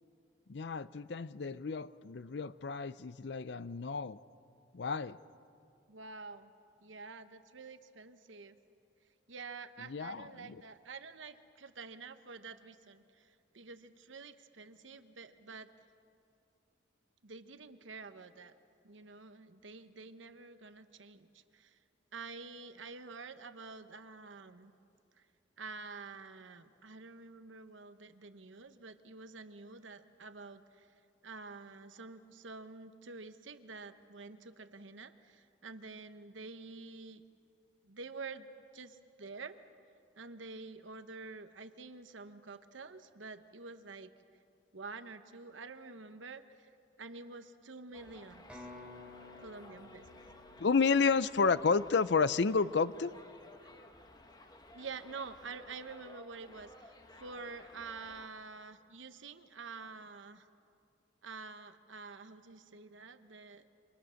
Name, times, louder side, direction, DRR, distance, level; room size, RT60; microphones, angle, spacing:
voice 1, 0.5-4.2 4.7-5.2 9.9-10.3 50.6-53.1, left 5 dB, 65° left, 16 dB, 0.5 m, -31 dB
voice 2, 5.9-6.5 6.8-8.6 9.3-15.7 17.2-18.6 18.8-21.8 22.1-24.7 25.2-25.3 25.6-30.9 31.2-37.2 37.8-39.6 40.2-44.1 44.7-46.7 47.0-48.7 49.4-50.2 54.7-60.5 61.2-63.7, right 4 dB, 85° right, 10 dB, 1.1 m, -48 dB
Subway metro underground, 47.9-58.3, left 1 dB, 20° left, 1.2 m, -56 dB
sound 1, 48.5-52.3, left 2 dB, 5° right, 3.6 m, -54 dB
28.0 x 25.5 x 6.4 m, 2.6 s
head